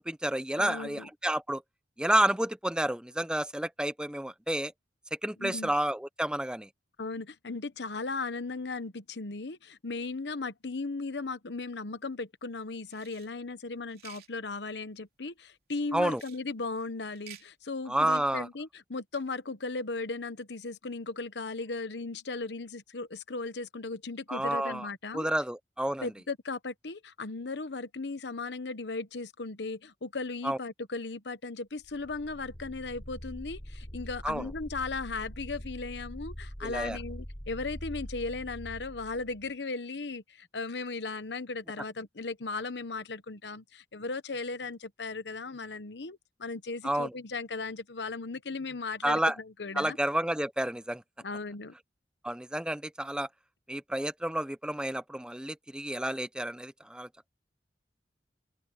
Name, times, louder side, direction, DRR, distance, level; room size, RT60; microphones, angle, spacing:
voice 1, 0.0-1.6 2.0-4.7 5.2-6.7 15.9-16.2 17.9-18.5 24.3-24.9 25.1-26.1 30.4-30.6 34.2-34.5 36.6-37.0 46.8-47.1 49.0-49.3 49.8-51.0 52.2-53.3 53.7-57.1, right 1 dB, 5° right, 0.7 m, -30 dB
voice 2, 0.6-1.1 5.4-5.7 7.0-25.3 26.0-50.0 51.2-51.7, left 3 dB, 80° left, 1.1 m, -37 dB
sound 1, 12.9-13.3 13.9-14.3 16.1-16.4 17.1-17.5, right 11 dB, 60° right, 3.5 m, -51 dB
sound 2, 31.8-39.5, equal, 30° left, 6.5 m, -43 dB
open air
head